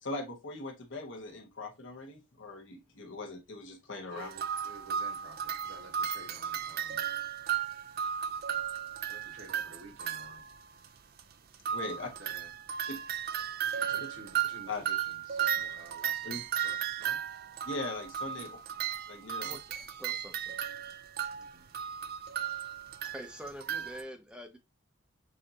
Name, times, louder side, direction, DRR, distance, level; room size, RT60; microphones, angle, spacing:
voice 1, 0.0-4.3 11.7-12.1 12.9-13.0 14.7-14.8 16.2-16.4 17.6-18.6 19.1-19.6, left 2 dB, 65° left, 1.3 m, -40 dB
voice 2, 4.1-7.0 9.1-10.5 11.9-12.5 13.8-17.2 21.3-21.7, right 2 dB, 75° right, 1.4 m, -52 dB
sound 1, 4.2-10.5 10.8-10.9 11.2-11.3 11.5-24.0, right 9 dB, 50° right, 0.4 m, -35 dB
voice 3, 19.4-20.6 23.1-24.6, equal, 5° right, 0.6 m, -46 dB
6.5 x 2.7 x 2.8 m
head